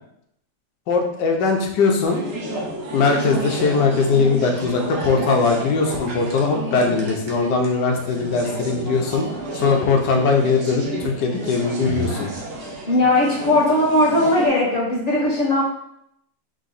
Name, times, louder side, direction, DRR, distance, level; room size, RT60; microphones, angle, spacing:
voice 1, 0.9-2.3 2.9-12.3, left 4 dB, 75° left, 2 dB, 1.4 m, -20 dB
sound 1, 2.0-14.5, right 2 dB, 55° right, 1.0 m, -30 dB
voice 2, 12.9-15.6, left 1 dB, 25° left, -6 dB, 1.3 m, -18 dB
3.9 x 3.2 x 4.0 m, 0.76 s
omnidirectional pair, 1.9 m